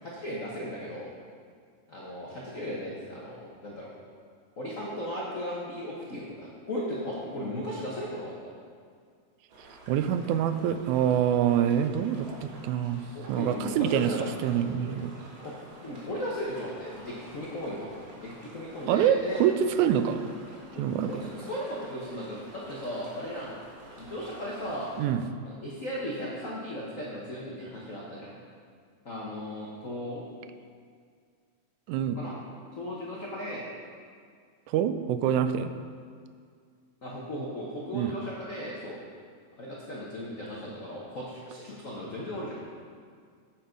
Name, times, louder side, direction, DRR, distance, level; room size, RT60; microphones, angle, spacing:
voice 1, 0.0-1.1 1.9-3.9 4.6-8.3 13.1-15.0 15.4-17.9 18.1-19.4 20.7-23.5 24.0-24.9 25.4-28.4 29.0-30.2 32.1-32.3 32.7-33.6 37.0-39.0 39.6-42.7, left 1 dB, 85° left, -5 dB, 0.7 m, -36 dB
sound 1, 9.5-25.1, right 2 dB, 60° right, 2.5 m, -49 dB
voice 2, 9.9-13.0 13.3-14.1 14.4-15.1 18.9-20.2 20.8-21.1 25.0-25.2 31.9-32.2 34.7-35.7 37.9-38.2, right 9 dB, 90° right, 9 dB, 2.0 m, -25 dB
8.5 x 7.3 x 5.1 m, 2.1 s
omnidirectional pair, 3.3 m